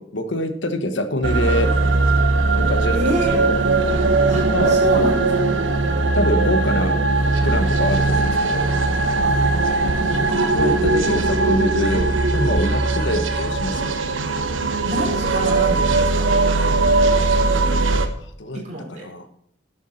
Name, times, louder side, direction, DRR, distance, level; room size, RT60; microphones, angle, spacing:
voice 1, 0.0-1.8 2.6-3.5 4.5-4.8 6.1-7.0 7.4-8.7 10.5-12.1 12.3-14.0 18.4-18.6 18.9-19.3, left 1 dB, 70° left, 8 dB, 1.4 m, -25 dB
sound 1, 1.2-18.1, right 3 dB, 90° right, 1.2 m, -19 dB
voice 2, 2.9-3.4 4.2-5.5 9.2-10.4 14.6-16.3 18.5-19.0, equal, 40° right, -2 dB, 4.5 m, -28 dB
11.5 x 8.2 x 4.3 m, 0.70 s
head